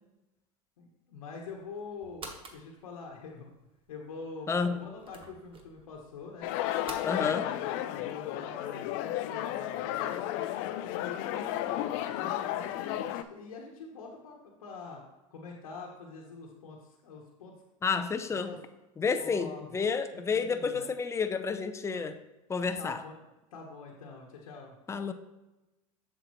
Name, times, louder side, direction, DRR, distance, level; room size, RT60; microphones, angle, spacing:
voice 1, 0.8-3.5 3.9-6.5 7.2-10.2 11.0-11.8 12.1-15.0 15.3-17.6 18.4-18.6 19.2-19.9 20.1-20.9 21.9-22.0 22.8-23.2 23.5-24.7, left 4 dB, 90° left, -1 dB, 1.1 m, -45 dB
sound 1, 1.4-7.1, right 3 dB, 30° right, 1.2 m, -50 dB
voice 2, 4.5-4.8 7.0-7.5 17.8-18.5 19.0-22.2 22.5-23.0 24.9-25.1, left 5 dB, 15° left, 9 dB, 0.6 m, -30 dB
sound 2, 6.4-13.2, left 13 dB, 60° left, 0.5 m, -33 dB
7.4 x 6.6 x 3.0 m, 1.0 s
hypercardioid pair, 95°, 18 cm